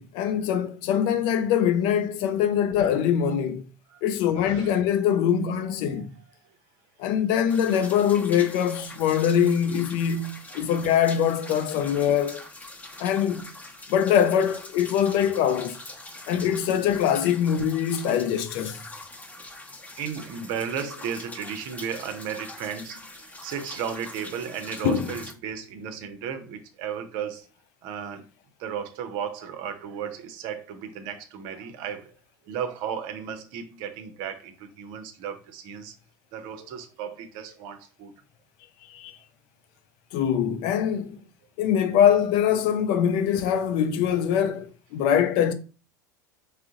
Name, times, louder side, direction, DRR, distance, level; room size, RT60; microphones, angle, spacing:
voice 1, 0.0-3.6 4.0-6.1 7.0-12.4 13.0-13.5 13.9-15.8 16.3-18.8 24.8-25.1 38.9-39.2 40.1-41.2 41.6-45.5, left 9 dB, 50° left, 0.4 m, -23 dB
voice 2, 4.4-4.8 5.9-6.0 10.5-10.7 18.7-18.8 20.0-27.5 27.8-28.2 28.6-32.2 32.5-35.9 36.3-38.1, right 8 dB, 50° right, 0.6 m, -35 dB
sound 1, 7.5-25.3, left 2 dB, 15° left, 0.9 m, -43 dB
3.7 x 2.1 x 3.5 m
figure-of-eight pair, 75°, 10 cm